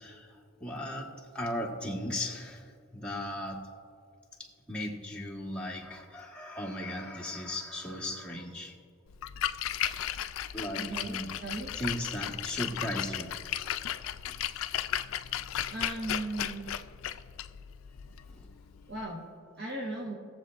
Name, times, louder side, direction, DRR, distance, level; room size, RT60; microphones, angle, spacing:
voice 1, 0.0-3.7 4.4-8.7 10.5-11.3 11.7-13.3 18.2-18.5, left 1 dB, 5° left, -3 dB, 1.3 m, -37 dB
Splash splatter, 9.1-19.0, left 11 dB, 80° left, 0.4 m, -35 dB
voice 2, 10.8-11.7 15.7-16.7 18.9-19.3 19.6-20.2, right 2 dB, 55° right, -3 dB, 1.2 m, -37 dB
20.0 x 7.4 x 2.5 m, 2.3 s
head